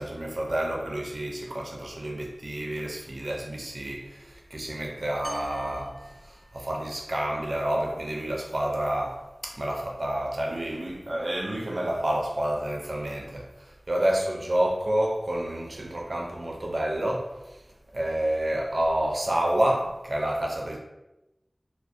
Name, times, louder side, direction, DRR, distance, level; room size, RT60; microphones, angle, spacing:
voice 1, 0.0-6.0 6.3-13.5 13.9-17.3 17.9-20.8, right 1 dB, 75° right, 0.4 m, -29 dB
sound 1, 5.2-7.0, equal, ahead, 0.7 m, -46 dB
2.4 x 2.0 x 2.5 m
wide cardioid pair, 45°, 0 cm